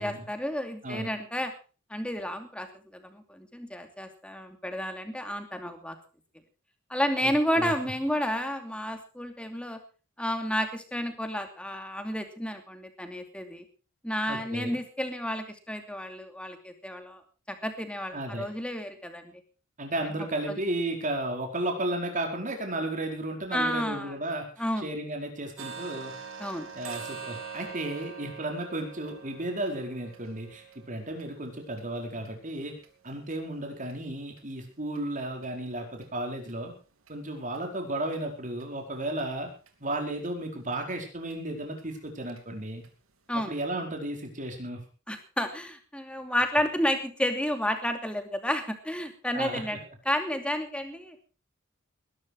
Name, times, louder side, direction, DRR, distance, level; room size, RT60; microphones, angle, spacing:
voice 1, 0.0-1.5 1.9-2.7 2.9-6.0 6.9-9.8 10.2-13.6 14.0-17.2 17.5-19.2 20.5-20.6 23.5-24.1 24.6-24.9 26.4-26.7 43.3-43.5 45.1-49.8 50.1-51.2, equal, 5° left, 6 dB, 2.7 m, -31 dB
voice 2, 7.2-7.7 14.3-14.8 18.1-18.5 19.8-24.5 24.8-26.1 26.7-32.8 33.0-36.7 37.1-39.5 39.8-42.8 43.3-44.8 49.3-49.8, right 1 dB, 40° right, 3 dB, 4.8 m, -34 dB
sound 1, 25.6-33.4 33.8-33.9 34.4-34.5 34.9-35.0 35.4-35.5 36.0-36.1 36.5-36.6 37.1-37.2 37.5-37.6 38.1-38.2 38.6-38.7 39.2-39.3 39.7-39.8 40.2-40.3 40.7-40.8 41.3-41.4 41.8-41.9 42.3-42.4 42.8-42.9 43.4-43.5, right 6 dB, 85° right, 3.0 m, -44 dB
20.5 x 12.0 x 4.7 m, 0.36 s
head